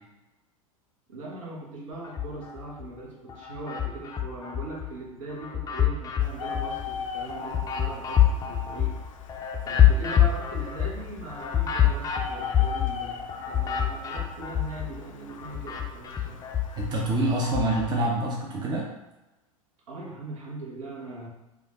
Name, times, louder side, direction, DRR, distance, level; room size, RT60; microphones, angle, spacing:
voice 1, 1.1-9.0 9.6-16.5 19.9-21.3, right 2 dB, 60° right, -2 dB, 1.3 m, -40 dB
sound 1, 2.0-2.9 3.3-4.9 5.3-15.0 15.3-17.9, left 10 dB, 20° left, 0.6 m, -26 dB
Bird, 6.2-17.4, left 6 dB, 65° left, 0.5 m, -40 dB
voice 2, 16.8-18.9, right 1 dB, 25° right, -2 dB, 0.8 m, -26 dB
5.1 x 2.5 x 3.7 m, 1.0 s
figure-of-eight pair, 90°, 18 cm